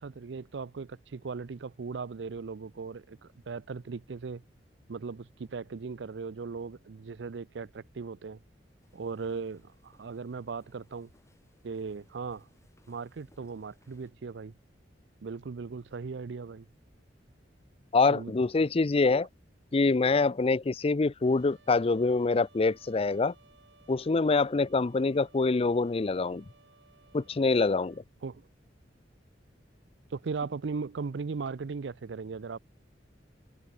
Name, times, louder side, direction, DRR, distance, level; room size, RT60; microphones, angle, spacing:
voice 1, 0.0-4.4 4.9-8.4 8.9-11.1 11.6-12.5 12.9-14.5 15.2-16.7 18.1-18.3 28.2-28.5 30.1-32.6, right 4 dB, 70° right, 0.5 m, -38 dB
sound 1, 8.8-14.1, left 1 dB, 15° left, 6.3 m, -67 dB
voice 2, 17.9-19.3 19.7-23.3 23.9-26.4 27.1-28.0, left 3 dB, 35° left, 0.5 m, -25 dB
Trumpet, 21.2-28.1, right 3 dB, 85° right, 7.2 m, -61 dB
head